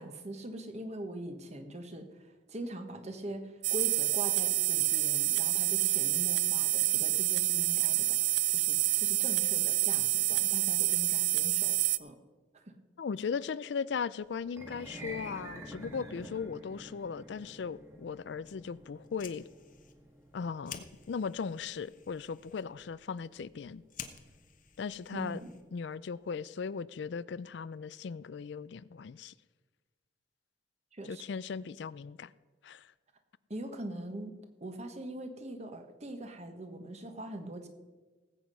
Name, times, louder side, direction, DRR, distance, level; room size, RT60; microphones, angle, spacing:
voice 1, 0.0-12.2 12.5-12.7 25.1-25.5 30.9-31.2 33.5-37.7, right 1 dB, 35° right, 1.4 m, -42 dB
sound 1, 3.6-12.0, right 17 dB, 65° right, 0.4 m, -28 dB
voice 2, 13.0-19.5 20.3-23.8 24.8-25.4 25.7-29.3 31.1-32.3 32.6-32.9, left 6 dB, 65° left, 0.4 m, -38 dB
sound 2, 14.5-24.8, equal, 15° right, 1.8 m, -49 dB
Fire, 19.0-25.9, left 8 dB, 45° left, 1.0 m, -51 dB
18.5 x 8.2 x 5.5 m
head